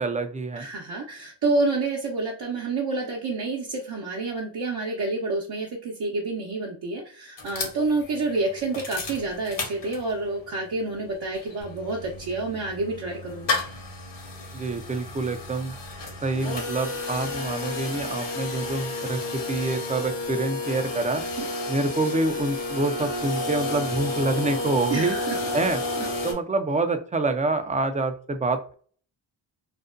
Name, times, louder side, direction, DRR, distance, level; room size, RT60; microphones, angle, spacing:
voice 1, 0.0-0.7 14.5-15.7 16.2-21.2 21.7-25.2 25.5-25.8 26.2-28.7, right 3 dB, 20° right, 8 dB, 0.3 m, -26 dB
voice 2, 0.6-13.6 21.4-21.5 24.9-25.4, right 3 dB, 55° right, -2 dB, 0.7 m, -28 dB
sound 1, 7.4-10.3 10.7-10.8 11.0-26.3, left 2 dB, 65° left, 0.9 m, -31 dB
sound 2, 11.6-16.5, right 1 dB, 50° left, 0.5 m, -45 dB
2.5 x 2.1 x 2.4 m, 0.44 s
cardioid pair, 60°, 47 cm